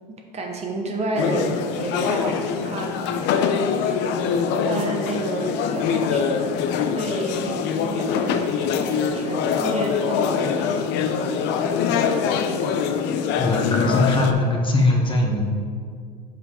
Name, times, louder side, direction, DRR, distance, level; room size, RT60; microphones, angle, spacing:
voice 1, 0.1-3.2 3.9-4.1 4.7-6.6 6.8-10.7, right 2 dB, 30° right, 1 dB, 1.1 m, -30 dB
sound 1, 1.1-14.3, left 6 dB, 55° left, 0.6 m, -24 dB
voice 2, 13.4-15.4, left 2 dB, 25° left, 1 dB, 1.1 m, -20 dB
5.4 x 5.0 x 4.9 m, 2.1 s
hypercardioid pair, 85°, 21 cm